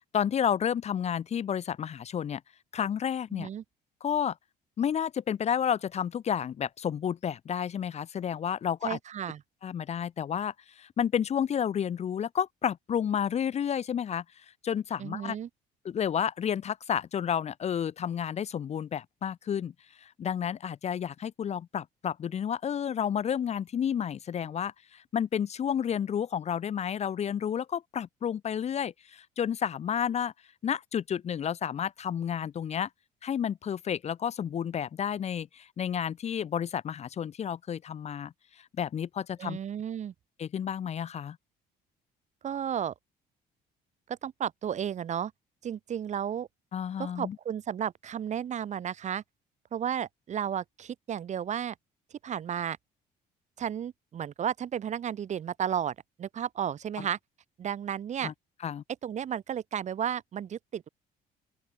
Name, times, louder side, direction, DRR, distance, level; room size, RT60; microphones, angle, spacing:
voice 1, 0.1-2.4 2.7-3.5 4.0-4.4 4.8-9.0 9.6-14.2 14.6-15.4 15.8-19.7 20.0-30.3 30.6-32.9 33.2-39.6 40.4-41.4 46.7-47.4 58.2-58.3 58.6-58.8, left 8 dB, 40° left, 0.8 m, -31 dB
voice 2, 3.3-3.6 8.8-9.4 15.0-15.5 39.4-40.1 42.4-42.9 44.1-45.3 45.6-46.5 47.0-49.2 49.7-51.7 52.2-52.8 53.6-57.2 57.6-58.3 59.0-60.9, right 9 dB, 45° right, 1.0 m, -33 dB
open air
cardioid pair, 110°, 17 cm